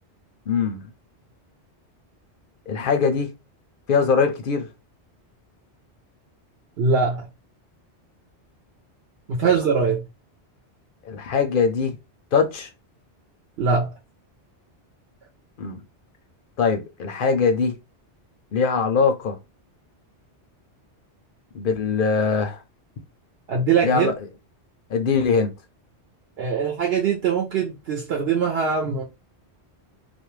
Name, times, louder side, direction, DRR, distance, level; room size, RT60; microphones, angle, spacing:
voice 1, 0.5-0.9 2.7-3.3 3.9-4.7 11.0-12.0 12.3-12.7 15.6-15.8 16.6-17.7 18.5-19.4 21.5-22.6 23.8-24.1 24.9-25.5, left 5 dB, 60° left, 0.6 m, -22 dB
voice 2, 6.8-7.3 9.3-10.0 13.6-13.9 23.5-24.1 26.4-29.0, right 5 dB, 65° right, 0.8 m, -22 dB
2.4 x 2.1 x 3.0 m
omnidirectional pair, 1.2 m